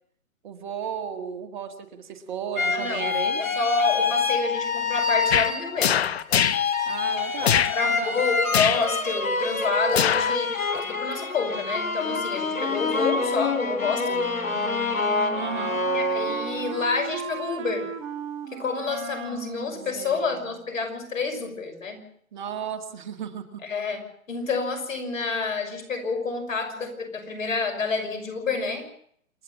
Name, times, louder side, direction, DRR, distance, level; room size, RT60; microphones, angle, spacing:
voice 1, 0.4-3.4 6.9-8.2 15.3-15.8 19.9-20.3 22.3-23.6, right 7 dB, 35° right, 6 dB, 2.1 m, -34 dB
sound 1, 2.6-6.0 6.3-16.9, left 4 dB, 85° left, 3.7 m, -26 dB
voice 2, 2.7-3.1 3.4-6.1 7.7-14.2 15.9-17.9 18.5-22.1 23.6-28.9, left 4 dB, 65° left, 5 dB, 6.2 m, -29 dB
sound 2, 5.3-5.5 5.8-6.6 7.4-7.7 8.5-8.8 9.9-10.4 10.8-10.9, left 9 dB, 50° left, 0.8 m, -22 dB
Wind instrument woodwind instrument, 14.1-20.7, right 7 dB, 15° right, 1.8 m, -37 dB
28.0 x 11.0 x 8.7 m, 0.66 s
hypercardioid pair, 155°, 41 cm